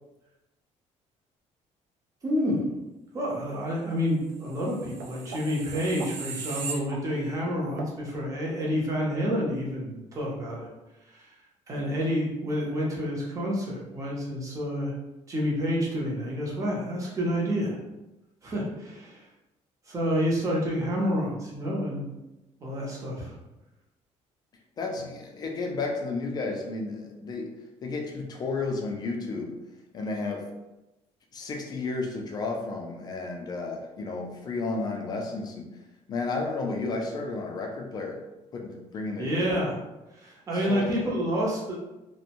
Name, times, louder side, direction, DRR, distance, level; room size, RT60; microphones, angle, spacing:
voice 1, 2.2-2.6 3.1-10.7 11.1-11.3 11.7-14.9 15.3-17.8 18.4-19.2 19.9-22.1 22.6-23.4 39.2-39.8 40.1-41.8, equal, 25° right, -4 dB, 0.6 m, -29 dB
sound 1, 4.5-7.4 7.8-7.9, right 4 dB, 75° right, 0.4 m, -38 dB
voice 2, 24.8-27.5 27.8-29.5 29.9-30.5 31.3-35.7 36.1-38.2 38.5-39.6 40.6-41.0, left 3 dB, 30° left, 1 dB, 0.4 m, -32 dB
2.6 x 2.0 x 2.8 m, 1.0 s
cardioid pair, 175°, 13 cm